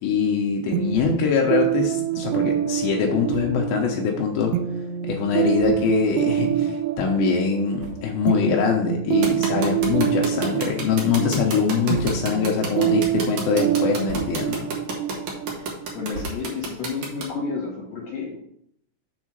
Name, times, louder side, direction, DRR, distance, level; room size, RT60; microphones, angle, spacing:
voice 1, 0.0-4.5 5.1-14.7, left 6 dB, 75° left, 0 dB, 2.9 m, -23 dB
sound 1, 0.7-16.3, right 11 dB, 85° right, 2.4 m, -26 dB
sound 2, 0.9-1.4 1.7-1.8 2.1-2.2 3.2-3.7 4.4-4.5 5.2-5.3 5.5-6.1 6.6-6.8 7.7-8.4 8.7-8.9 9.7-10.3 10.8-11.2 11.7-12.6 13.0-13.4 13.8-14.7 15.0-16.9, equal, 45° right, 2.1 m, -41 dB
sound 3, 9.2-17.2, right 4 dB, 65° right, 1.8 m, -30 dB
voice 2, 15.9-18.4, left 5 dB, 55° left, -1 dB, 1.9 m, -31 dB
7.3 x 4.3 x 6.1 m, 0.71 s
omnidirectional pair, 5.4 m